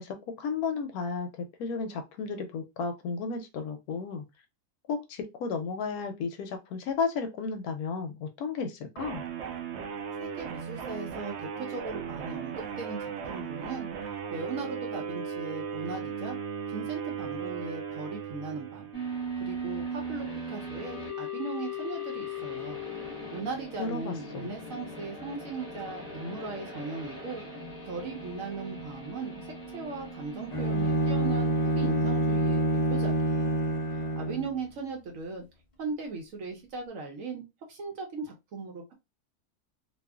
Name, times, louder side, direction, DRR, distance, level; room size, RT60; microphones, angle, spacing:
voice 1, 0.0-4.2 4.9-9.2 23.8-24.5, left 5 dB, 75° left, 1.0 m, -33 dB
sound 1, 9.0-19.2, right 7 dB, 85° right, 0.6 m, -37 dB
voice 2, 10.2-13.9 14.3-16.4 16.7-18.9 19.4-22.8 23.3-27.4 27.8-33.5 33.9-35.4 35.8-38.9, right 4 dB, 65° right, 0.9 m, -38 dB
sound 2, 18.9-34.7, equal, 20° left, 0.8 m, -40 dB
Bowed string instrument, 30.5-34.6, right 1 dB, 55° left, 0.3 m, -27 dB
2.6 x 2.3 x 2.2 m
omnidirectional pair, 1.7 m